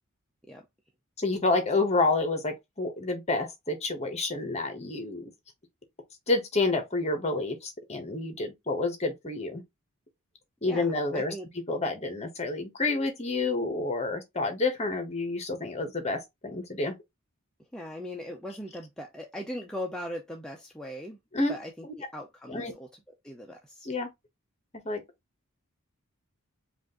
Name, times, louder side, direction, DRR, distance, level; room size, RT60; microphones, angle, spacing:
voice 1, 1.2-5.2 6.3-9.6 10.6-11.3 11.7-17.0 21.3-21.5 21.8-21.9 22.5-22.7 23.8-24.1 24.8-25.0, left 3 dB, 30° left, 1.3 m, -29 dB
voice 2, 10.7-11.5 17.7-21.2 21.5-21.7 22.0-22.9 23.2-23.9, equal, 5° left, 0.6 m, -39 dB
5.0 x 2.6 x 3.7 m
head